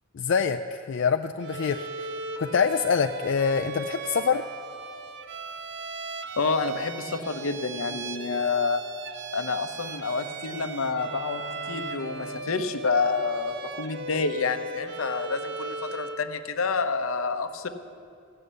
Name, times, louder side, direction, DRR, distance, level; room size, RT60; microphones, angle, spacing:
voice 1, 0.1-1.9 2.4-4.4, left 6 dB, 60° left, 6 dB, 0.4 m, -25 dB
Bowed string instrument, 1.4-16.3, right 3 dB, 60° right, 0.7 m, -38 dB
voice 2, 6.4-8.8 9.3-17.7, left 4 dB, 85° left, 9 dB, 0.8 m, -28 dB
sound 1, 9.7-14.1, right 1 dB, 5° left, 2.1 m, -48 dB
15.0 x 6.6 x 9.8 m, 2.5 s
head